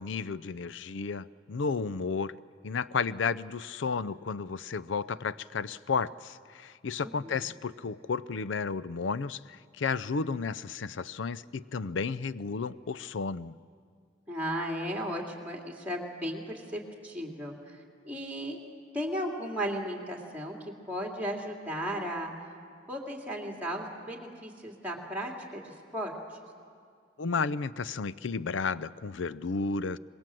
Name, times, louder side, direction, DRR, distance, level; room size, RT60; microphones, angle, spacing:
voice 1, 0.0-2.3 2.6-13.5 27.2-30.0, left 5 dB, 80° left, 17 dB, 0.5 m, -32 dB
voice 2, 7.0-7.4 14.3-17.8 18.0-18.6 18.9-20.6 20.9-22.3 22.9-26.1, equal, 10° right, 0 dB, 2.6 m, -35 dB
25.5 x 20.5 x 7.6 m, 2.1 s
head